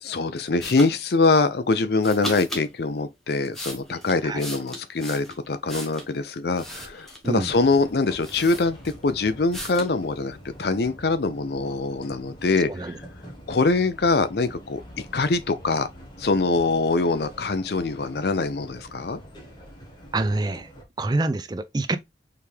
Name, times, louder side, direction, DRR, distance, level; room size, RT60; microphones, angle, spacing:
voice 1, 0.0-13.0 13.5-15.9 16.2-19.2, left 3 dB, 60° left, 0.5 m, -24 dB
sound 1, 0.6-0.9 2.0-2.7 3.3-6.1 6.5-7.3 7.9-8.0 8.2-9.1 9.5-9.9, equal, ahead, 1.1 m, -37 dB
sound 2, 7.5-20.8, equal, 25° left, 1.3 m, -45 dB
voice 2, 20.1-20.7 21.0-22.0, right 2 dB, 20° right, 0.4 m, -26 dB
4.7 x 3.5 x 3.2 m
head